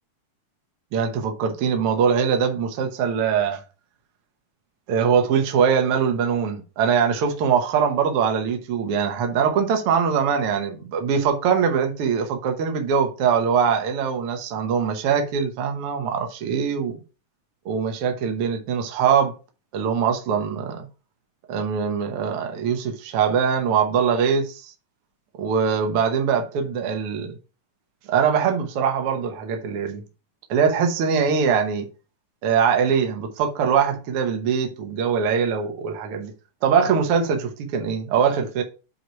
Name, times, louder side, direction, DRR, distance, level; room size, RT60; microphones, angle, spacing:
voice 1, 0.9-3.6 4.9-17.0 17.6-19.3 19.7-20.8 21.5-24.7 25.4-27.4 28.1-30.0 30.5-31.9 32.4-36.3 36.6-38.6, right 6 dB, 90° right, 1.2 m, -22 dB
7.7 x 3.1 x 4.6 m
omnidirectional pair, 4.1 m